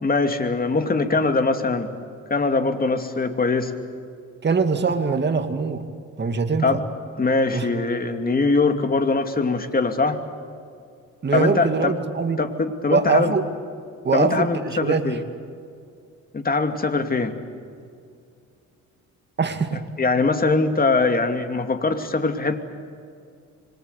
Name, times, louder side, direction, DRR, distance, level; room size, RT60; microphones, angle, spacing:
voice 1, 0.0-1.9 2.3-3.7 6.6-6.8 7.2-10.2 11.3-12.0 12.4-13.3 14.1-15.2 16.3-17.4 19.7-22.6, left 3 dB, 30° left, 7 dB, 2.6 m, -22 dB
voice 2, 4.4-5.8 6.2-6.8 7.5-7.7 11.2-12.4 12.9-13.4 14.0-15.2 19.4-19.8, right 5 dB, 35° right, 7 dB, 2.4 m, -22 dB
27.0 x 23.5 x 8.4 m, 2.4 s
cardioid pair, 90°, 30 cm